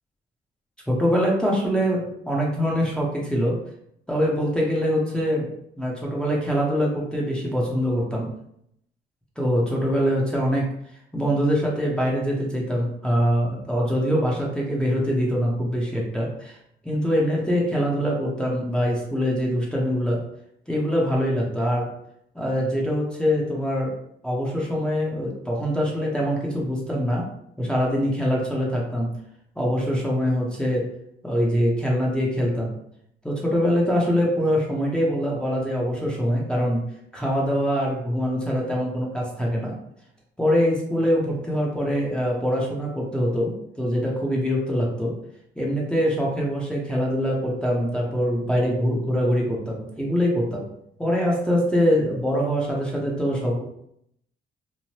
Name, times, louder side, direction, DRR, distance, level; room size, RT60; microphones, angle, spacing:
voice 1, 0.9-3.6 4.1-5.5 5.8-8.3 9.4-10.7 11.1-16.6 16.8-20.2 20.7-21.9 22.3-23.9 24.2-27.2 27.6-29.1 29.6-30.9 31.2-32.7 33.2-36.8 37.1-39.7 40.4-45.1 45.6-50.6 51.0-53.6, equal, 5° left, -4 dB, 0.7 m, -23 dB
3.1 x 2.0 x 2.9 m, 0.74 s
cardioid pair, 90°, 20 cm